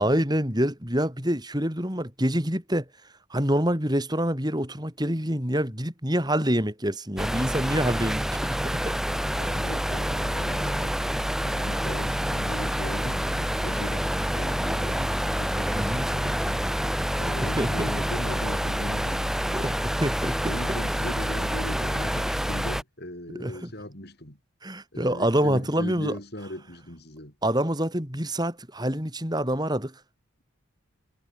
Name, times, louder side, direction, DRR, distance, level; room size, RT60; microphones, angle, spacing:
voice 1, 0.0-2.8 3.3-9.0 15.7-16.1 17.6-17.9 19.5-20.4 23.3-23.7 24.6-26.2 27.4-29.9, equal, 20° right, 7.6 m, -26 dB
sound 1, 7.2-22.8, equal, ahead, 0.9 m, -27 dB
voice 2, 9.4-10.9 11.4-16.7 17.2-19.8 20.5-24.4 24.9-27.3, equal, 50° left, 7.6 m, -38 dB
head